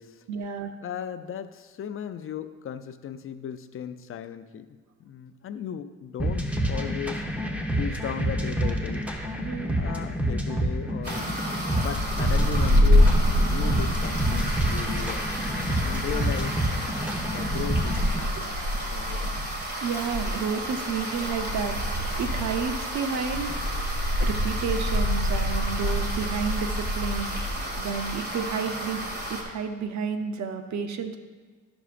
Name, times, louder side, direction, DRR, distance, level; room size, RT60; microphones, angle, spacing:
voice 1, 0.3-0.7 9.4-9.8 18.4-18.5 18.8-18.9 19.8-21.8 22.2-23.6 24.2-27.3 27.8-31.2, right 6 dB, 65° right, 8 dB, 0.7 m, -31 dB
voice 2, 0.8-4.7 5.0-7.2 7.8-9.1 9.7-11.2 11.8-13.1 13.4-15.2 15.8-16.6 17.3-18.5 18.9-19.4, left 8 dB, 45° left, 10 dB, 0.5 m, -36 dB
sound 1, 6.2-18.2, equal, 5° right, 0.9 m, -28 dB
sound 2, 11.0-29.4, equal, 35° right, 1.7 m, -27 dB
12.0 x 6.1 x 2.5 m, 1.4 s
cardioid pair, 90°, 30 cm